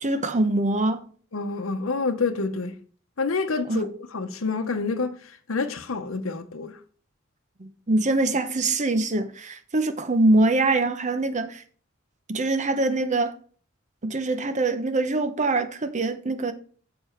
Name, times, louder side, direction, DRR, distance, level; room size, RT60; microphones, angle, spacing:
voice 1, 0.0-1.1 3.7-3.9 7.6-11.6 12.3-13.4 14.0-16.5, right 2 dB, 35° right, 0.8 m, -24 dB
voice 2, 1.3-2.8 3.2-3.9 4.1-5.2 5.5-6.7, left 4 dB, 80° left, 0.8 m, -27 dB
7.5 x 6.9 x 4.4 m
head